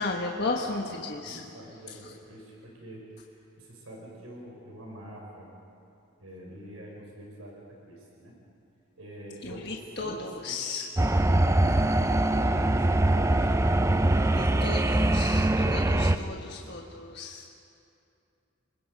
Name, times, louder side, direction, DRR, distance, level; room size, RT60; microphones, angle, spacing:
voice 1, 0.0-1.4 9.4-10.8 14.1-17.5, left 3 dB, 50° left, 0 dB, 1.4 m, -34 dB
voice 2, 0.8-5.5 6.2-8.4 9.0-10.9 11.7-13.6 15.8-16.8, right 1 dB, 90° right, -2 dB, 5.1 m, -45 dB
sound 1, 11.0-16.2, right 1 dB, 15° right, 0.5 m, -23 dB
29.5 x 22.0 x 5.3 m, 2.6 s
head